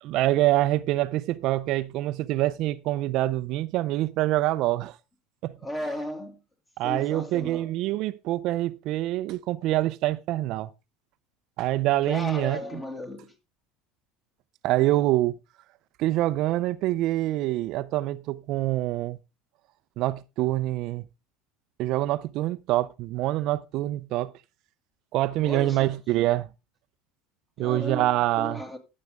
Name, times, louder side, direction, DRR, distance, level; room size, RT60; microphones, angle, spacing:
voice 1, 0.0-5.0 5.4-5.5 6.8-10.7 11.6-12.6 14.6-15.3 16.0-19.2 20.0-21.0 21.8-24.3 25.1-26.5 27.6-28.6, right 16 dB, 60° right, 0.5 m, -25 dB
voice 2, 5.6-6.4 6.8-7.7 12.0-13.3 25.4-26.0 27.6-28.8, left 1 dB, 20° left, 2.3 m, -35 dB
14.5 x 6.5 x 3.5 m
supercardioid pair, 100°, 0 cm